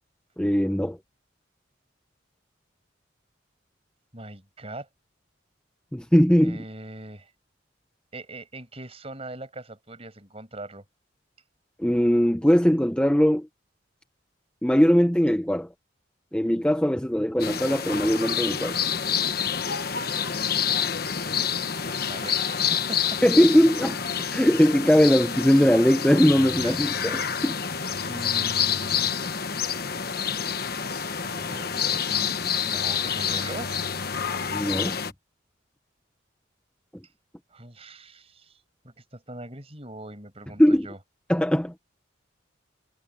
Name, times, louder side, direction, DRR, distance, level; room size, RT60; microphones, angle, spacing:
voice 1, 0.4-1.0 5.9-6.6 11.8-13.5 14.6-15.7 16.3-18.8 23.2-24.0 24.3-27.6 34.5-35.0 40.6-40.9 41.3-41.8, equal, 5° left, 0.8 m, -20 dB
voice 2, 4.1-4.9 6.4-7.3 8.1-10.8 21.9-23.2 26.6-26.9 28.0-29.1 31.2-33.8 37.5-38.6 38.8-41.0, right 2 dB, 30° right, 6.0 m, -41 dB
sound 1, 17.4-35.1, left 7 dB, 50° left, 1.2 m, -28 dB
head